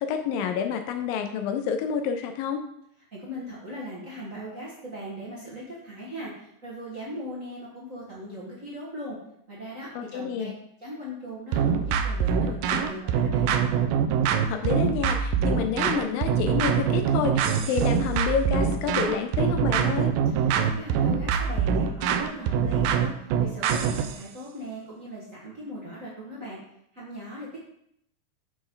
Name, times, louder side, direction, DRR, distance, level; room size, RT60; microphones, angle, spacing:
voice 1, 0.0-2.6 10.0-10.5 14.5-20.1, left 7 dB, 80° left, 7 dB, 2.1 m, -28 dB
voice 2, 3.1-6.3 6.6-9.2 9.5-10.5 10.8-13.5 20.2-26.6 26.9-27.6, equal, 50° right, -6 dB, 0.9 m, -39 dB
sound 1, 11.5-24.2, right 7 dB, 80° right, 2.1 m, -24 dB
8.6 x 6.3 x 3.9 m, 0.74 s
omnidirectional pair, 4.6 m